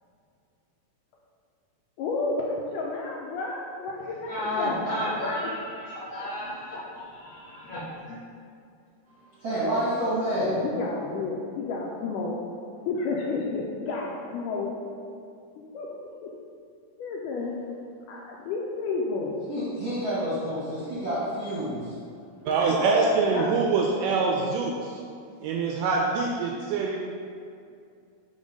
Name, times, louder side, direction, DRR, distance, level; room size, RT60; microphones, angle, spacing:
voice 1, 2.0-5.0 6.2-6.3 10.4-12.4 12.9-14.7 15.7-15.9 16.2-16.3 17.0-17.6 18.1-19.4 20.7-20.8 23.3-23.7, left 3 dB, 80° left, -2 dB, 1.9 m, -31 dB
voice 2, 4.2-8.2, left 1 dB, 60° left, -9 dB, 1.9 m, -32 dB
voice 3, 9.4-10.5 19.5-21.9, right 1 dB, 55° right, -11 dB, 1.3 m, -28 dB
voice 4, 22.5-25.0 25.4-27.0, right 4 dB, 80° right, -1 dB, 1.9 m, -24 dB
5.2 x 3.8 x 5.0 m, 2.4 s
omnidirectional pair, 4.1 m